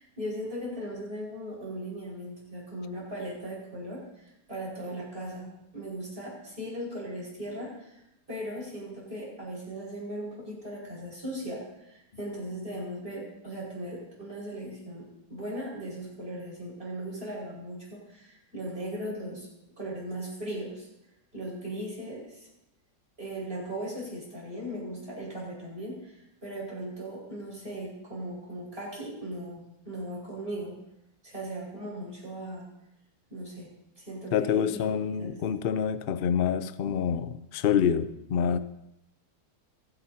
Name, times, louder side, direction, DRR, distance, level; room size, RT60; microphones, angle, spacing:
voice 1, 0.0-8.0 8.3-19.5 19.8-20.9 21.3-22.5 23.2-30.8 31.2-32.7 33.3-33.7 34.0-34.8 35.1-35.4, right 1 dB, 35° right, -5 dB, 5.5 m, -38 dB
voice 2, 34.3-38.6, left 8 dB, 85° left, 12 dB, 0.5 m, -27 dB
27.5 x 9.7 x 2.8 m, 0.86 s
omnidirectional pair, 1.8 m